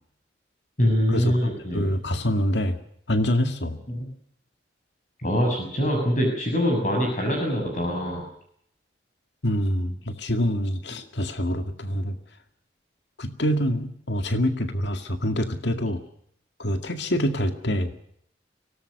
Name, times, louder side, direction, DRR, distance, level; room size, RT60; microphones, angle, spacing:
voice 1, 0.8-1.8 3.9-4.1 5.2-8.2, equal, 40° left, 2 dB, 6.9 m, -23 dB
voice 2, 1.7-2.8 3.1-3.8 9.4-12.2 13.2-16.0 16.6-17.9, equal, 70° left, 7 dB, 2.1 m, -25 dB
25.0 x 18.5 x 6.6 m, 0.68 s
head